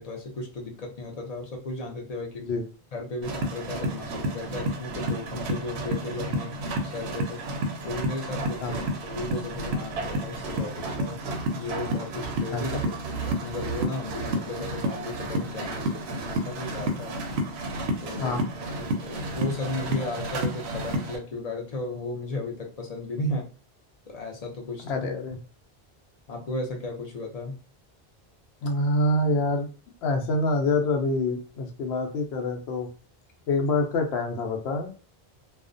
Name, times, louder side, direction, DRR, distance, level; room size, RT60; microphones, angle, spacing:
voice 1, 0.0-2.5 2.9-7.4 7.8-11.2 11.6-17.2 18.0-18.4 18.8-23.5 24.1-24.9 26.3-27.6, left 2 dB, 45° left, 1 dB, 0.5 m, -35 dB
sound 1, 3.2-21.2, right 1 dB, 85° right, 0.9 m, -31 dB
voice 2, 12.5-12.8 18.2-18.4 24.8-25.4 28.6-29.7 30.0-32.9 33.5-34.9, left 2 dB, 85° left, 3 dB, 0.8 m, -26 dB
2.4 x 2.1 x 2.5 m, 0.35 s
omnidirectional pair, 1.1 m